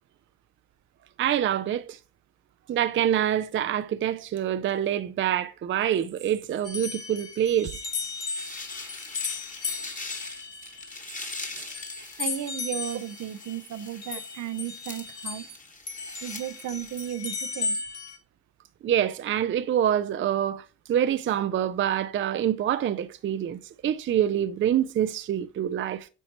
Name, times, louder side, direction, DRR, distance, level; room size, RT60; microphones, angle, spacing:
voice 1, 1.2-2.0 2.7-7.8 18.8-26.1, right 10 dB, 40° right, 0.4 m, -26 dB
sound 1, 6.6-15.6 15.9-18.2, left 4 dB, 55° left, 1.8 m, -35 dB
sound 2, 7.9-17.3, left 3 dB, 25° left, 1.4 m, -42 dB
voice 2, 12.2-15.5 16.2-17.8, right 11 dB, 70° right, 0.7 m, -34 dB
8.9 x 4.4 x 2.9 m
cardioid pair, 90°, 30 cm